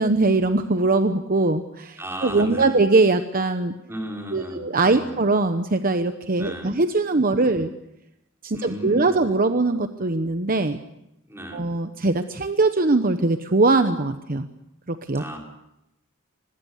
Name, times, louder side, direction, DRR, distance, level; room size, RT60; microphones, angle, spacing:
voice 1, 0.0-3.7 4.3-7.7 8.4-10.8 11.5-14.5 14.9-15.2, right 3 dB, 45° right, 9 dB, 1.0 m, -21 dB
voice 2, 2.0-2.8 3.9-5.2 6.4-6.8 7.3-7.6 8.5-9.2 11.3-11.7 15.1-15.4, right 1 dB, 10° right, 1 dB, 5.5 m, -35 dB
25.0 x 20.5 x 8.2 m, 0.85 s
head